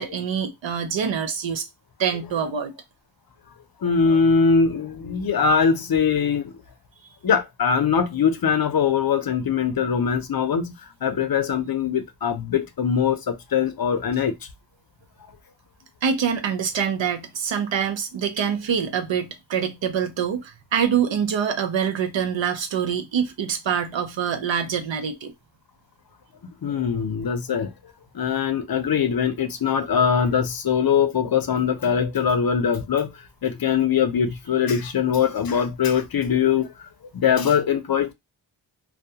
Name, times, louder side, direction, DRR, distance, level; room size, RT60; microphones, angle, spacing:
voice 1, 0.0-1.7 2.0-2.7 16.0-25.3, right 7 dB, 75° right, 0.7 m, -25 dB
voice 2, 3.8-6.5 7.2-14.3 26.6-27.7 28.1-38.1, left 6 dB, 50° left, 0.6 m, -22 dB
2.2 x 2.2 x 2.7 m
wide cardioid pair, 90°, 46 cm